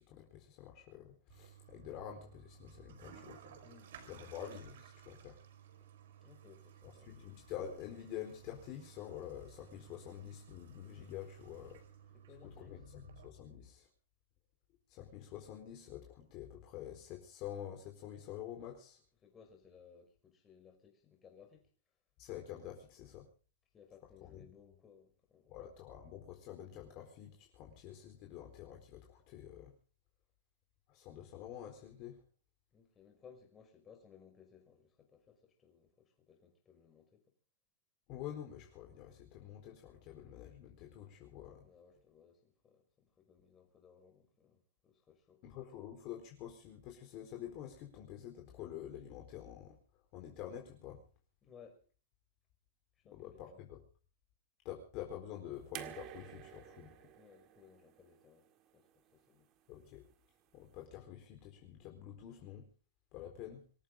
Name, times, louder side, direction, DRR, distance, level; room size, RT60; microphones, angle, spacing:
voice 1, 0.0-3.6 4.1-5.4 7.0-11.8 12.4-13.9 14.9-19.0 22.2-23.3 24.2-24.4 25.5-29.7 30.9-32.2 38.1-41.6 45.4-49.8 50.1-51.0 53.1-53.8 54.6-57.1 59.7-60.0 60.5-62.7 63.1-63.6, left 10 dB, 35° left, 4.2 m, -48 dB
Toilet flush, 1.3-13.3, right 9 dB, 70° right, 5.0 m, -57 dB
voice 2, 3.6-4.4 6.2-7.1 12.1-12.8 19.2-21.6 23.7-25.6 32.7-37.2 41.6-45.4 51.4-51.8 53.0-53.7 57.2-58.5 58.7-59.5 63.5-63.6, left 7 dB, 20° left, 5.6 m, -61 dB
sound 1, 55.7-58.9 60.1-60.2, right 12 dB, 30° right, 1.8 m, -50 dB
26.0 x 14.5 x 3.8 m
hypercardioid pair, 150°, 0 cm